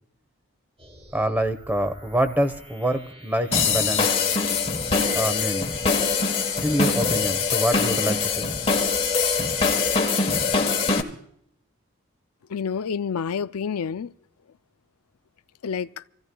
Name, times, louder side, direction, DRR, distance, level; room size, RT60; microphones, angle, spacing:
sound 1, 0.8-10.7, equal, 25° right, 3.4 m, -47 dB
voice 1, 1.1-4.2 5.1-5.7 6.6-8.5, equal, 10° right, 1.1 m, -26 dB
sound 2, 3.5-11.0, left 4 dB, 25° left, 1.4 m, -23 dB
voice 2, 12.5-14.1 15.6-16.0, left 6 dB, 90° left, 0.5 m, -28 dB
27.5 x 16.0 x 2.3 m
head